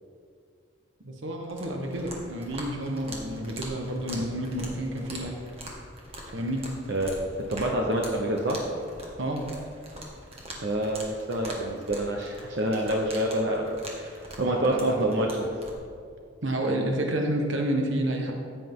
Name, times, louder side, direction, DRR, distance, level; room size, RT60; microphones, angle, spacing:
voice 1, 1.0-5.3 6.3-6.6 9.2-9.5 14.4-15.1 16.4-18.3, right 1 dB, 80° right, 1 dB, 1.3 m, -29 dB
sound 1, 1.4-15.7, right 1 dB, 30° right, 1.9 m, -43 dB
voice 2, 7.5-8.6 10.6-15.5, right 1 dB, 65° right, 1 dB, 1.0 m, -27 dB
15.0 x 8.3 x 3.8 m, 2.3 s
head